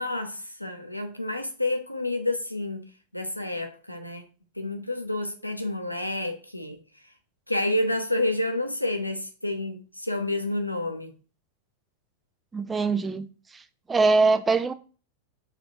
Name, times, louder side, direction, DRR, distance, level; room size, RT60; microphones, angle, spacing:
voice 1, 0.0-2.9 3.1-4.3 4.6-6.8 7.5-11.1, left 2 dB, 90° left, 0.7 m, -29 dB
voice 2, 12.5-13.3 13.5-13.6 13.9-14.7, right 3 dB, 15° right, 0.4 m, -22 dB
6.7 x 2.5 x 2.9 m
figure-of-eight pair, 90°, 0 cm